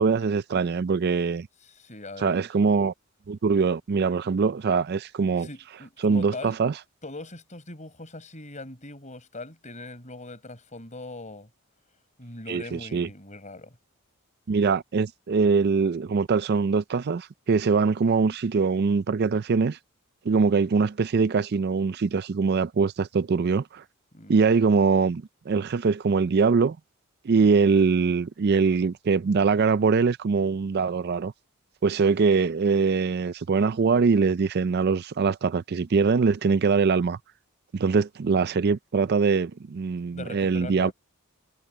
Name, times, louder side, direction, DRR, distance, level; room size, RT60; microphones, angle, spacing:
voice 1, 0.0-1.5 2.2-2.9 3.3-5.5 6.0-6.8 12.5-13.1 14.5-19.8 20.2-23.8 24.3-26.8 27.2-31.3 31.8-37.2 37.7-40.9, right 5 dB, 50° right, 0.4 m, -23 dB
voice 2, 1.7-2.4 5.4-6.6 7.0-11.5 12.2-13.8 24.1-24.4 40.1-40.9, left 2 dB, 35° left, 6.4 m, -41 dB
head